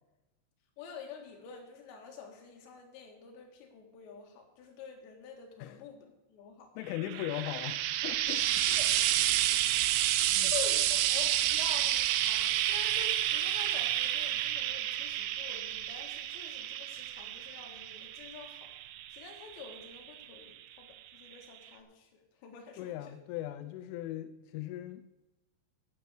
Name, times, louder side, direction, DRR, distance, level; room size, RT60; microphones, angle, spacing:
voice 1, 0.8-6.7 7.1-7.2 8.7-8.9 10.2-18.7 19.1-20.9 21.1-23.2, left 7 dB, 70° left, 2 dB, 3.8 m, -47 dB
voice 2, 6.8-8.7 10.3-10.5 22.8-25.1, left 13 dB, 90° left, 9 dB, 3.1 m, -39 dB
Frying (food), 6.9-20.4 21.3-21.4, right 13 dB, 85° right, 2.9 m, -30 dB
11.5 x 6.3 x 8.1 m, 0.98 s
omnidirectional pair, 5.5 m